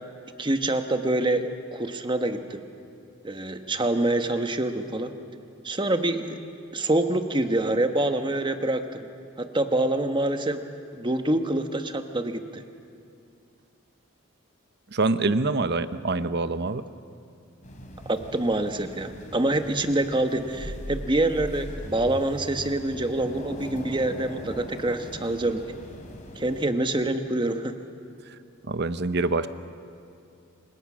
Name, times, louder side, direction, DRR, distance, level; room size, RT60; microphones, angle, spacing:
voice 1, 0.4-2.6 3.2-5.1 5.6-6.4 6.7-9.1 9.4-10.6 10.9-12.6 18.0-25.6 26.4-27.9, right 1 dB, 20° right, 7 dB, 1.2 m, -26 dB
voice 2, 14.9-16.8 28.3-28.4 28.7-29.5, right 3 dB, 50° right, 12 dB, 0.9 m, -25 dB
sound 1, 17.6-26.7, left 1 dB, 35° left, 3.3 m, -40 dB
29.0 x 26.5 x 6.3 m, 2.5 s
head